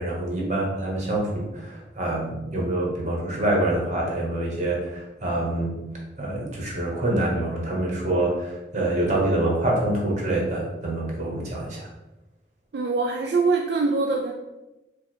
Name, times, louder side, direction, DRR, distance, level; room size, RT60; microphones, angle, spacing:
voice 1, 0.0-5.7 6.2-11.9, right 1 dB, 40° right, -2 dB, 1.2 m, -26 dB
voice 2, 12.7-14.3, right 3 dB, 65° right, 0 dB, 0.4 m, -23 dB
4.7 x 2.4 x 4.4 m, 1.0 s
head